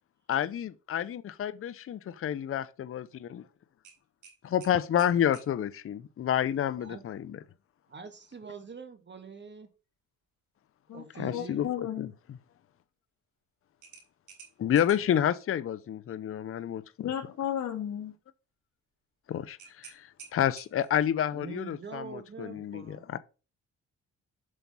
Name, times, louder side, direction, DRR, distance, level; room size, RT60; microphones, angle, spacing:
voice 1, 0.3-3.4 4.4-7.4 11.2-11.7 12.0-12.1 14.6-16.8 19.3-23.2, left 10 dB, 45° left, 0.7 m, -29 dB
sound 1, 3.8-5.5 8.1-8.4 8.8-8.9 13.8-15.2 19.6-21.0, right 6 dB, 75° right, 4.4 m, -51 dB
voice 2, 7.9-9.7 10.9-11.6 21.3-23.1, right 5 dB, 35° right, 1.8 m, -44 dB
voice 3, 11.3-12.1 17.0-18.1, left 10 dB, 70° left, 1.7 m, -33 dB
7.8 x 6.0 x 5.4 m
cardioid pair, 90°, 30 cm